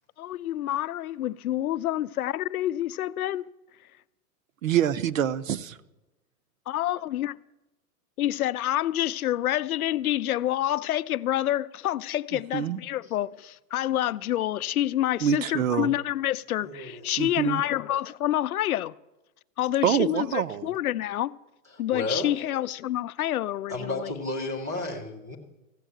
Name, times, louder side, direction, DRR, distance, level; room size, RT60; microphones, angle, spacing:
voice 1, 0.2-3.5 6.7-7.3 8.2-18.9 19.6-21.3 21.8-24.1, left 13 dB, 70° left, 0.6 m, -28 dB
voice 2, 4.6-5.8 12.3-12.8 15.2-15.9 17.2-17.6 19.8-20.7, right 9 dB, 60° right, 0.7 m, -26 dB
voice 3, 16.6-17.1 21.9-22.4 23.7-25.4, left 2 dB, 10° right, 0.4 m, -32 dB
15.0 x 7.2 x 9.0 m
hypercardioid pair, 175°, 46 cm